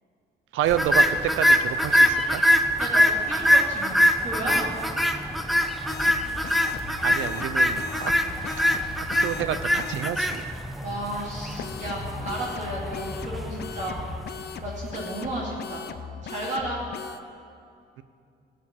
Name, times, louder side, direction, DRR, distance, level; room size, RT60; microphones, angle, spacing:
voice 1, 0.5-2.4 7.0-8.1 9.0-10.5, right 10 dB, 85° right, 13 dB, 0.7 m, -29 dB
sound 1, 0.7-15.0, equal, ahead, 0.8 m, -24 dB
voice 2, 2.8-4.8 10.8-14.0 14.6-15.8 16.2-16.8, right 1 dB, 35° right, -5 dB, 2.7 m, -33 dB
sound 2, 5.9-10.1 11.6-17.2, left 8 dB, 55° left, 0.7 m, -39 dB
14.0 x 6.9 x 8.9 m, 2.5 s
cardioid pair, 90°, 20 cm